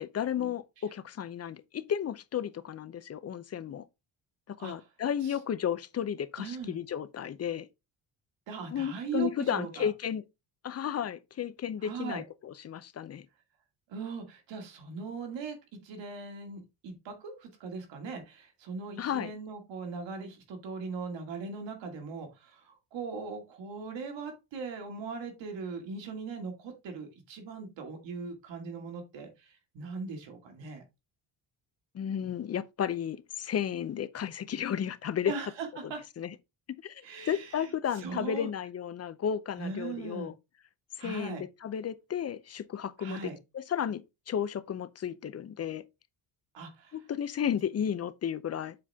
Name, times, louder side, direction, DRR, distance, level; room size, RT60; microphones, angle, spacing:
voice 1, 0.0-3.9 4.5-7.7 8.7-10.2 10.6-13.3 19.0-19.3 31.9-35.3 35.8-36.3 36.8-40.3 41.0-45.8 46.9-48.8, left 9 dB, 35° left, 0.5 m, -33 dB
voice 2, 6.4-6.8 8.5-9.9 11.8-12.2 13.9-15.6 15.8-30.8 35.3-36.0 37.0-38.5 39.6-40.3 41.0-41.4 43.0-43.4 46.5-47.0, right 4 dB, 80° right, 2.3 m, -39 dB
7.5 x 4.2 x 3.5 m
cardioid pair, 125°, 43 cm